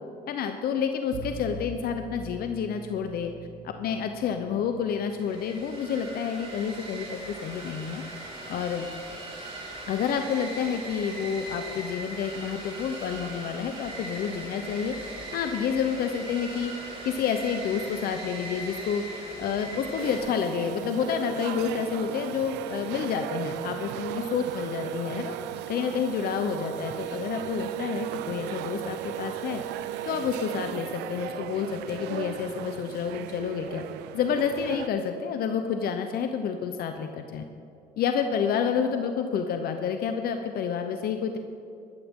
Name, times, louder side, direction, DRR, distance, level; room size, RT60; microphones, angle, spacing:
voice 1, 0.3-3.3 3.6-8.0 8.5-8.9 9.9-14.9 15.3-16.7 17.0-25.4 25.7-29.6 30.0-33.8 34.1-37.4 38.0-41.4, left 7 dB, 65° left, 6 dB, 0.8 m, -29 dB
Bowed string instrument, 1.1-6.2, right 2 dB, 60° right, 1.5 m, -43 dB
sound 1, 5.1-20.2, right 2 dB, 30° right, 3.4 m, -40 dB
sound 2, 20.0-34.9, right 12 dB, 90° right, 0.5 m, -36 dB
13.0 x 13.0 x 3.7 m, 2.5 s
cardioid pair, 110°, 17 cm